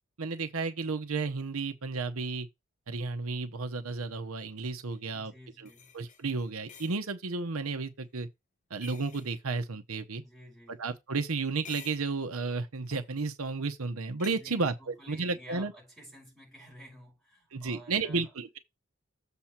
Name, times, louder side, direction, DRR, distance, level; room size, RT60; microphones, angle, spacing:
voice 1, 0.2-2.5 2.9-5.3 5.6-5.7 5.9-8.3 8.7-10.2 10.8-15.7 17.5-18.6, right 4 dB, 90° right, 0.9 m, -33 dB
sound 1, 4.9-5.0 5.7-7.0 8.7-9.3 11.4-12.1 12.8-13.1 14.2-14.4, left 7 dB, 35° left, 0.8 m, -50 dB
voice 2, 5.1-5.9 10.2-10.9 14.3-18.3, equal, ahead, 5.5 m, -52 dB
7.4 x 3.7 x 5.9 m
head